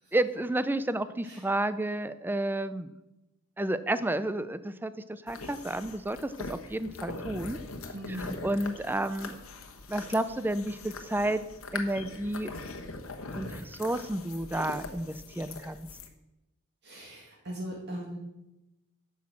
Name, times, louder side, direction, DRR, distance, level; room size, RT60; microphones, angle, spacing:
voice 1, 0.1-2.9 3.6-7.6 8.1-9.4 9.9-11.4 11.7-12.5 13.3-15.9, right 1 dB, 10° right, 13 dB, 0.5 m, -31 dB
sound 1, 5.3-16.1, left 3 dB, 70° left, 1.3 m, -42 dB
voice 2, 7.9-8.4 16.8-18.2, equal, 50° right, -2 dB, 2.2 m, -39 dB
10.0 x 6.2 x 7.5 m, 0.96 s
head